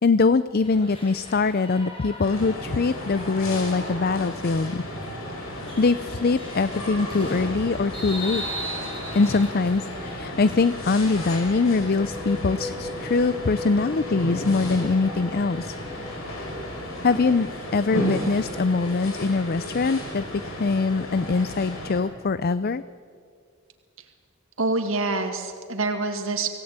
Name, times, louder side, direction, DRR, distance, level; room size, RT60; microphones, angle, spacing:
voice 1, 0.0-4.8 5.5-8.4 9.1-15.8 17.0-17.5 17.7-22.8, left 4 dB, 45° left, 15 dB, 0.5 m, -23 dB
sound 1, 0.6-19.2, equal, 25° left, 6.2 m, -41 dB
sound 2, 2.2-22.0, equal, 75° left, 5.7 m, -34 dB
sound 3, 11.4-19.0, left 2 dB, ahead, 1.6 m, -40 dB
voice 2, 24.6-26.5, right 3 dB, 70° right, 5 dB, 2.1 m, -26 dB
25.5 x 17.5 x 8.9 m, 2.2 s
head